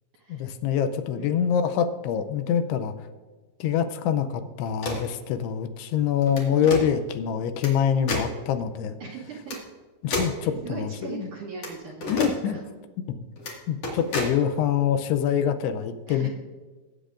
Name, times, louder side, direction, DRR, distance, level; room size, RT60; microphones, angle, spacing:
voice 1, 0.3-2.9 3.6-9.0 10.0-11.3 12.1-12.6 13.7-16.3, left 8 dB, 80° left, 8 dB, 2.5 m, -25 dB
voice 2, 1.2-1.6 6.6-6.9 9.0-9.6 10.4-12.2 12.5-12.6 14.1-14.3 16.1-16.3, right 5 dB, 70° right, -3 dB, 1.9 m, -39 dB
sound 1, 4.6-5.1 6.2-6.8 7.6-7.7 8.1-8.3 9.5-9.6 10.1-10.4 11.6-11.7 12.0-12.3 13.4-13.5 13.8-14.3, left 2 dB, 45° left, 2.4 m, -30 dB
20.5 x 8.5 x 2.5 m, 1.3 s
omnidirectional pair, 5.0 m